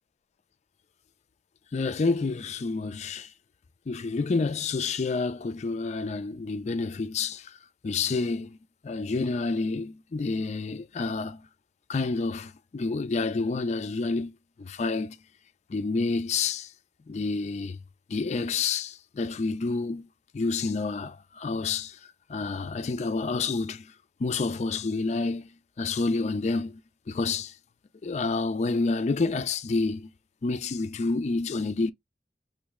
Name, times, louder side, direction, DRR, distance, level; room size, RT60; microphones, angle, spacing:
voice 1, 1.7-3.3 3.9-7.5 7.8-8.6 8.8-11.5 11.9-15.2 15.7-16.7 17.1-17.8 18.1-20.1 20.3-22.0 22.3-23.9 24.2-25.5 25.8-26.8 27.1-27.5 28.0-30.1 30.4-31.9, left 3 dB, 40° left, 0.4 m, -29 dB
3.1 x 2.5 x 3.6 m
head